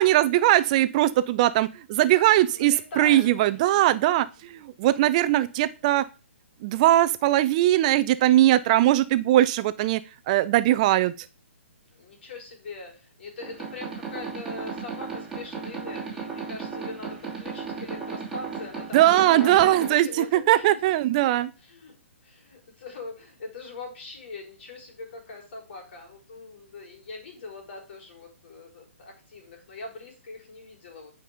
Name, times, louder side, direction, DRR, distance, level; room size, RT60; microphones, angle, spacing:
voice 1, 0.0-6.1 6.6-10.0 10.3-11.3 18.9-21.5, right 14 dB, 35° right, 14 dB, 0.4 m, -20 dB
voice 2, 2.5-3.6 11.9-20.8 21.6-31.1, left 3 dB, 55° left, 2 dB, 4.0 m, -41 dB
sound 1, 13.4-19.9, right 5 dB, 5° right, 2.7 m, -35 dB
10.0 x 5.3 x 5.0 m, 0.35 s
hypercardioid pair, 140°, 7 cm